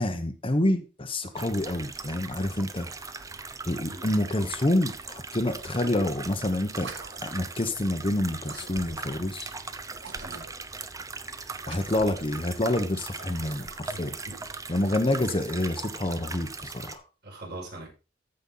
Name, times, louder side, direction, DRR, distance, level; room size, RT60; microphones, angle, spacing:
voice 1, 0.0-2.9 3.7-6.9 7.2-9.5 11.7-14.1 14.7-17.0, left 1 dB, 30° left, 1.0 m, -27 dB
sound 1, 1.3-17.0, right 4 dB, 20° right, 0.7 m, -40 dB
sound 2, 6.7-7.6 8.4-9.2 9.9-10.7 11.6-12.3 13.1-14.0 14.7-15.6, right 4 dB, 75° right, 1.6 m, -45 dB
voice 2, 13.9-14.4 17.2-17.9, right 2 dB, 60° right, 5.5 m, -42 dB
14.0 x 5.4 x 3.9 m
head